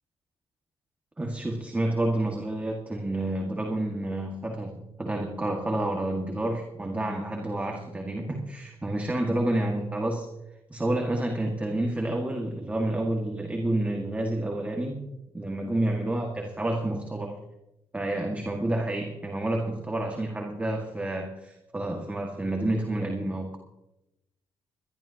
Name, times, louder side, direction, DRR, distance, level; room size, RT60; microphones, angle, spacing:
voice 1, 1.2-10.3 10.7-15.1 15.3-17.4 17.9-23.6, right 1 dB, 15° right, 2 dB, 1.8 m, -29 dB
23.0 x 12.5 x 2.9 m, 0.91 s
cardioid pair, 120°, 10 cm